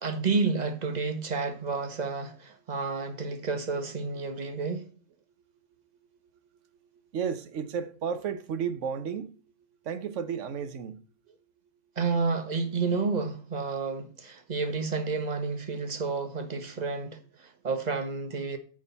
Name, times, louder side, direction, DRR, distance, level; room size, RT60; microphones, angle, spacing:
voice 1, 0.0-4.9 12.0-18.6, right 4 dB, 30° right, 1.0 m, -30 dB
voice 2, 7.1-9.4 9.8-11.0 16.7-16.8, right 7 dB, 60° right, 1.0 m, -33 dB
9.5 x 6.3 x 4.1 m
omnidirectional pair, 1.6 m